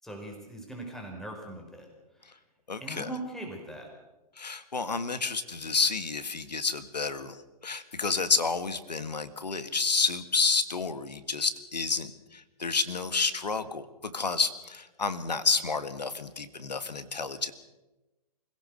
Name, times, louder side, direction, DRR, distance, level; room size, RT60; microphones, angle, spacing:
voice 1, 0.0-1.9 2.8-3.9, right 1 dB, ahead, 1 dB, 4.9 m, -40 dB
voice 2, 2.7-3.1 4.4-7.4 7.6-17.5, left 4 dB, 85° left, 11 dB, 1.7 m, -30 dB
24.5 x 16.5 x 6.6 m, 1.1 s
figure-of-eight pair, 115°, 21 cm